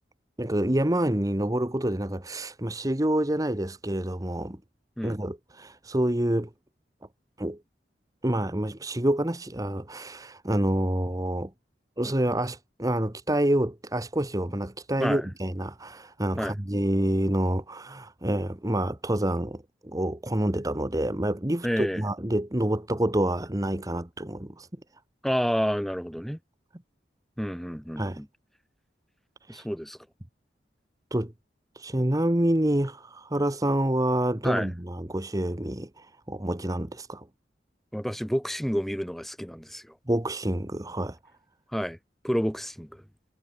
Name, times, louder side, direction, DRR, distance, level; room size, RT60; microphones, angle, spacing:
voice 1, 0.4-4.6 5.0-6.5 7.4-7.6 8.2-11.5 12.0-24.7 28.0-28.2 29.5-29.7 31.1-31.3 31.7-37.3 40.1-41.2, right 1 dB, 20° right, 1.3 m, -27 dB
voice 2, 21.6-22.1 25.2-26.4 27.4-28.3 29.5-30.0 34.4-34.7 37.9-39.8 41.7-42.0 42.2-43.0, equal, ahead, 3.6 m, -29 dB
head